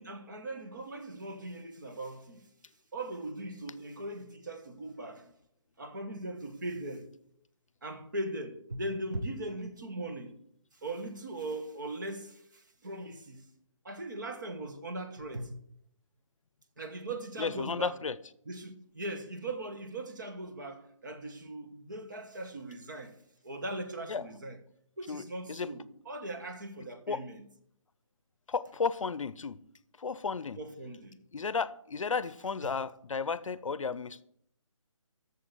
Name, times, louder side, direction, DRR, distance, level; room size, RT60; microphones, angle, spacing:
voice 1, 0.0-2.4 2.9-5.3 5.8-7.1 7.8-10.4 10.8-13.5 13.8-15.6 16.8-17.9 18.5-23.1 23.4-24.6 25.0-27.4 30.6-31.2 32.6-32.7, right 1 dB, 35° right, 1.2 m, -39 dB
voice 2, 17.4-18.2 24.1-24.3 25.1-25.7 27.1-27.2 28.5-29.6 30.0-30.6 31.3-34.2, left 5 dB, 70° left, 0.6 m, -33 dB
7.4 x 7.1 x 8.2 m
hypercardioid pair, 175°, 17 cm